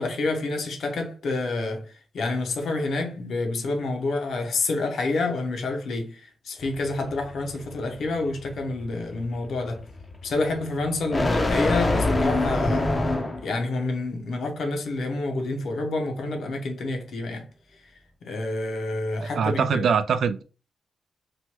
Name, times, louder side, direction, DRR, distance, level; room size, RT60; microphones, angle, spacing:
voice 1, 0.0-9.9 10.2-17.5 18.2-19.9, left 2 dB, 70° left, 0.7 m, -28 dB
sound 1, 6.6-13.6, left 2 dB, 25° left, 0.5 m, -27 dB
voice 2, 19.2-20.4, right 6 dB, 70° right, 0.3 m, -23 dB
3.0 x 2.2 x 2.9 m
wide cardioid pair, 135°, 0 cm